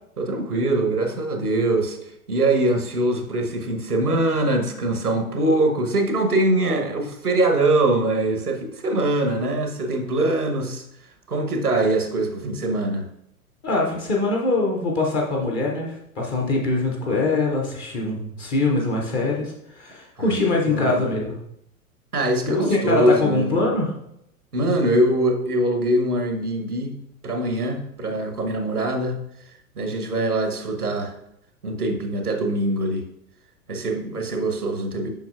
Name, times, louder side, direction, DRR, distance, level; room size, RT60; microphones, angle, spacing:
voice 1, 0.2-10.8 11.3-13.1 20.2-21.1 22.1-23.7 24.5-29.2 29.7-31.1 31.6-33.1 33.7-35.1, right 1 dB, 85° right, 5 dB, 1.1 m, -23 dB
voice 2, 13.6-21.4 22.5-23.9, left 2 dB, 10° left, -1 dB, 0.4 m, -23 dB
7.0 x 5.7 x 2.4 m, 0.78 s
figure-of-eight pair, 100°, 44 cm